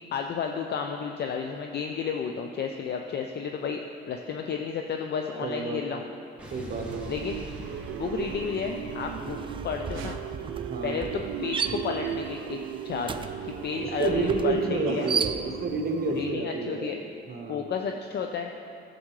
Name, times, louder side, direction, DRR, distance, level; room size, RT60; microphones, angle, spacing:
voice 1, 0.1-3.8 4.1-6.0 7.1-7.4 8.0-10.2 10.8-12.6 12.8-13.1 13.4-15.1 16.2-17.0 17.5-18.5, left 6 dB, 55° left, 4 dB, 0.6 m, -32 dB
voice 2, 5.4-6.0 6.5-7.0 10.7-11.0 13.8-17.0 17.3-17.7, right 3 dB, 50° right, 2 dB, 1.1 m, -29 dB
Explosion, 6.4-10.7, right 1 dB, 5° right, 1.9 m, -44 dB
sound 1, 6.7-16.3, right 9 dB, 85° right, 0.5 m, -36 dB
sound 2, 6.9-7.1 7.4-15.9, right 5 dB, 25° right, 0.4 m, -36 dB
13.0 x 7.8 x 3.2 m, 2.7 s
cardioid pair, 90°, 20 cm